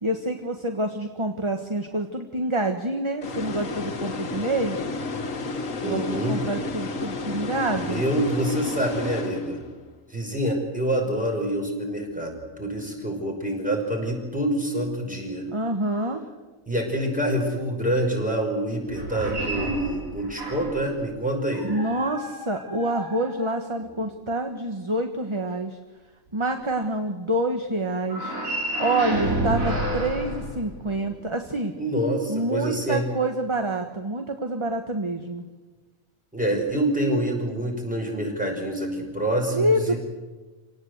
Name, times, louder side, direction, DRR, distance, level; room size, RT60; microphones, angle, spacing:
voice 1, 0.0-4.9 5.8-8.0 15.5-16.2 21.6-25.8 26.3-28.3 28.8-31.7 32.3-35.5 39.5-40.0, right 1 dB, 20° right, 5 dB, 1.3 m, -27 dB
sound 1, 3.2-9.9, left 3 dB, 70° left, 1.8 m, -32 dB
voice 2, 5.8-6.4 7.9-9.6 10.1-15.5 16.7-21.7 31.8-33.0 36.3-40.0, right 1 dB, 5° right, 0 dB, 5.7 m, -26 dB
sound 2, 18.9-20.9 21.5-23.9 28.0-31.2, right 1 dB, 80° right, 4.8 m, -30 dB
27.5 x 18.0 x 8.2 m, 1.3 s
omnidirectional pair, 1.4 m